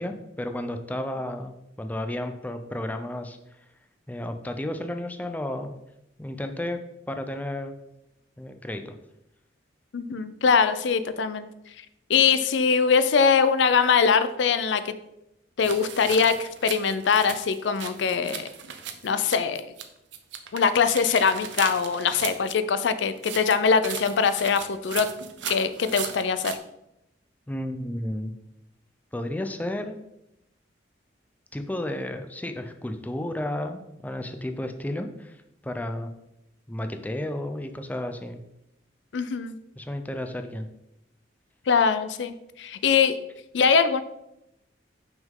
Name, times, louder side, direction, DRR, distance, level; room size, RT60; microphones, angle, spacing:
voice 1, 0.0-3.4 4.1-5.7 6.2-6.8 7.1-7.7 8.4-8.9 27.5-28.3 29.1-30.0 31.5-36.1 36.7-38.4 39.8-40.7, left 1 dB, 10° left, 7 dB, 0.4 m, -32 dB
voice 2, 9.9-11.5 12.1-14.9 15.6-18.5 19.0-19.7 20.5-25.1 25.5-26.6 39.1-39.6 41.7-43.2 43.5-44.0, left 6 dB, 75° left, 12 dB, 0.4 m, -22 dB
sound 1, 15.6-19.9 20.1-22.5 23.2-26.6, right 8 dB, 75° right, 0.7 m, -37 dB
6.0 x 5.4 x 3.7 m, 0.85 s
head